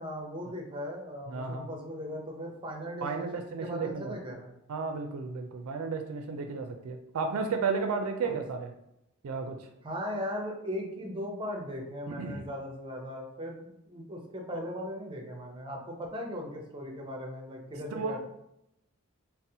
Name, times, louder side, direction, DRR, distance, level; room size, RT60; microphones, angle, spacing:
voice 1, 0.0-4.5 8.2-8.3 9.8-18.2, equal, 25° right, 1 dB, 0.6 m, -38 dB
voice 2, 1.3-1.7 3.0-4.2 4.7-8.7 9.2-9.7 12.1-12.5 17.9-18.2, right 4 dB, 80° right, 6 dB, 0.4 m, -33 dB
4.0 x 2.0 x 2.7 m, 0.82 s
head